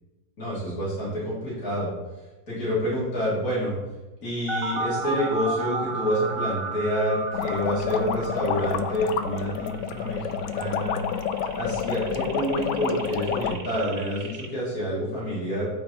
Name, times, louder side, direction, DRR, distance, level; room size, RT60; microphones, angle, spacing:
voice 1, 0.4-1.9 2.5-3.7 4.2-11.0 11.5-15.7, equal, 50° left, -9 dB, 3.7 m, -28 dB
sound 1, 4.5-14.5, right 3 dB, 75° right, 0.5 m, -34 dB
sound 2, 7.3-13.5, left 8 dB, 90° left, 1.3 m, -29 dB
10.5 x 4.9 x 4.3 m, 1.1 s
omnidirectional pair, 2.0 m